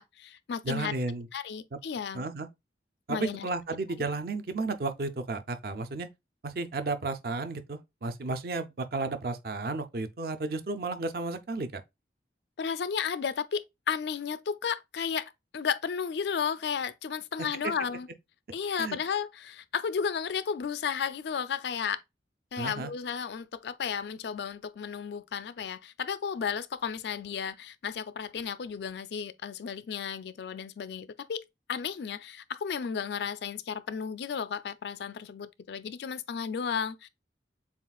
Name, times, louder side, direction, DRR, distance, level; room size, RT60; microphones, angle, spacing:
voice 1, 0.0-0.9 1.3-2.3 3.1-3.5 12.6-18.1 18.5-22.0 22.5-37.1, left 7 dB, 70° left, 0.4 m, -33 dB
voice 2, 0.6-1.3 2.1-2.5 3.1-6.1 6.4-11.8 17.6-17.7 18.8-19.0 22.6-22.9, right 3 dB, 55° right, 0.5 m, -33 dB
7.1 x 2.4 x 2.3 m
head